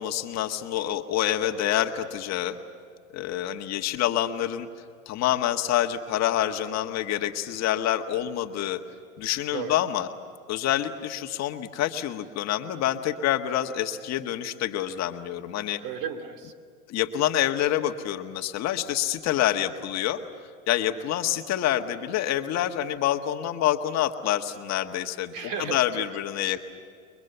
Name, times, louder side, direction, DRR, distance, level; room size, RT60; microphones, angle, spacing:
voice 1, 0.0-2.6 3.1-4.7 5.0-8.8 9.2-10.1 10.5-15.8 16.9-20.2 20.7-26.6, left 12 dB, 40° left, 6 dB, 1.6 m, -27 dB
voice 2, 15.8-16.5 25.3-26.1 26.3-26.6, right 7 dB, 45° right, 7 dB, 2.9 m, -34 dB
29.5 x 23.5 x 6.9 m, 2.2 s
hypercardioid pair, 110°, 41 cm